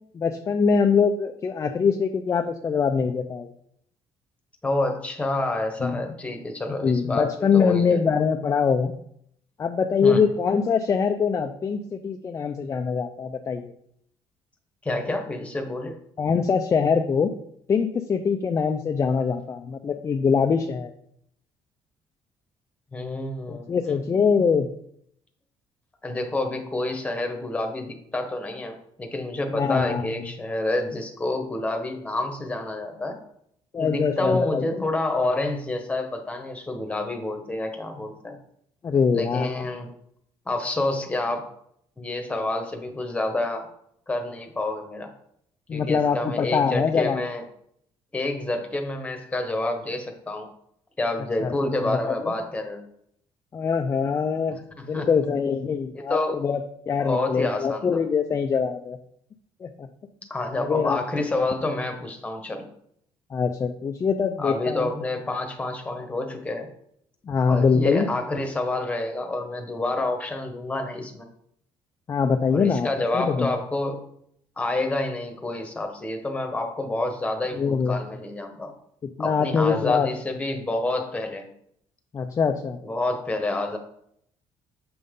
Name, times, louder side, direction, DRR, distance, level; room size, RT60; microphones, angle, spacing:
voice 1, 0.1-3.5 5.8-6.0 6.8-9.0 9.6-13.7 16.2-17.3 17.7-20.9 23.5-24.7 29.5-30.1 33.7-34.8 38.8-39.5 45.7-47.2 51.4-51.5 51.9-52.3 53.5-54.6 54.8-59.0 59.6-59.9 60.5-61.0 63.3-64.9 67.3-68.1 72.1-72.9 73.1-73.5 77.5-78.0 79.2-80.1 82.1-82.8, left 6 dB, 30° left, 6 dB, 0.4 m, -23 dB
voice 2, 4.6-8.0 10.0-10.3 14.8-15.9 22.9-24.0 26.0-33.2 33.8-38.4 39.1-39.9 40.5-41.5 42.0-43.7 44.1-45.1 45.7-47.4 48.1-50.5 51.0-52.8 54.8-55.1 55.9-56.4 57.0-57.9 60.3-62.7 64.4-66.7 67.5-71.3 72.5-74.1 74.6-78.7 79.2-81.5 82.8-83.8, left 2 dB, 10° left, 4 dB, 1.1 m, -28 dB
7.7 x 5.4 x 3.6 m, 0.70 s
cardioid pair, 135°, 10 cm